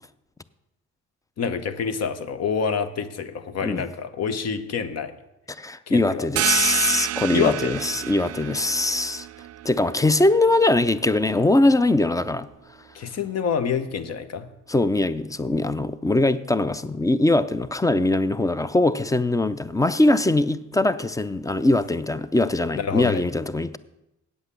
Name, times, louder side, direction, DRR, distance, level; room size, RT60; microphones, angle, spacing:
voice 1, 1.4-5.1 5.9-6.3 7.3-7.8 12.9-14.5 22.7-23.3, left 6 dB, 55° left, 1.0 m, -27 dB
voice 2, 5.5-9.3 9.6-12.5 14.7-23.8, left 2 dB, 10° left, 0.4 m, -21 dB
sound 1, 6.4-11.7, right 12 dB, 55° right, 0.4 m, -31 dB
8.7 x 8.0 x 6.7 m
cardioid pair, 90°, 30 cm